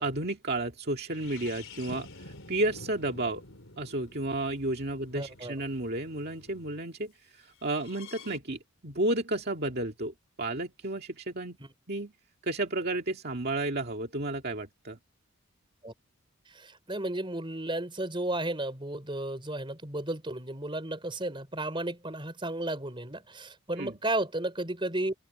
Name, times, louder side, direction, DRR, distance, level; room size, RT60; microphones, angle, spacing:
voice 1, 0.0-3.4 3.8-11.6 11.9-12.1 12.4-15.0 23.8-23.9, right 2 dB, 45° right, 2.2 m, -32 dB
sound 1, 1.1-6.8 7.6-8.4, left 3 dB, 65° left, 3.8 m, -49 dB
voice 2, 5.1-5.6 11.6-11.7 15.8-15.9 16.5-25.1, right 1 dB, 25° right, 4.1 m, -33 dB
open air
head